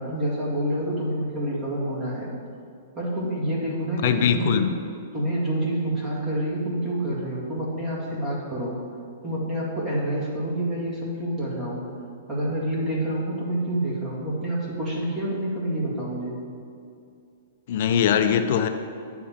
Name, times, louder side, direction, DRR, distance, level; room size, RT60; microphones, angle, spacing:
voice 1, 0.0-2.3 2.9-4.6 5.1-8.8 9.2-11.8 12.3-16.4, right 1 dB, 20° right, -6 dB, 2.1 m, -27 dB
voice 2, 4.0-4.7 17.7-18.7, left 8 dB, 55° left, 8 dB, 0.5 m, -21 dB
9.6 x 3.6 x 7.1 m, 2.4 s
hypercardioid pair, 150°, 0 cm